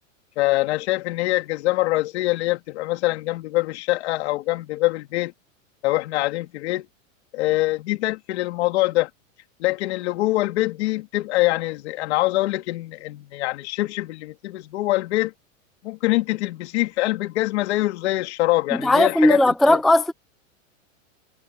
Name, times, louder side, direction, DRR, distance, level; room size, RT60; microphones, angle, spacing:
voice 1, 0.4-5.3 5.8-6.9 7.3-9.1 9.6-15.3 15.8-19.8, left 19 dB, 55° left, 2.8 m, -24 dB
voice 2, 18.8-20.1, left 1 dB, ahead, 0.4 m, -17 dB
supercardioid pair, 160°, 40 cm